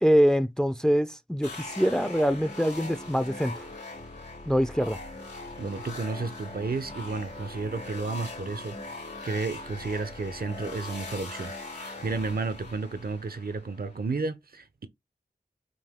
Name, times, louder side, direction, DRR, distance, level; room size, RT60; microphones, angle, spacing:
voice 1, 0.0-3.7 4.5-5.0, equal, 5° left, 0.4 m, -24 dB
sound 1, 1.4-14.2, left 2 dB, 85° left, 3.0 m, -41 dB
voice 2, 5.6-14.9, right 4 dB, 60° right, 0.6 m, -32 dB
5.4 x 2.7 x 3.6 m
wide cardioid pair, 45°, 17 cm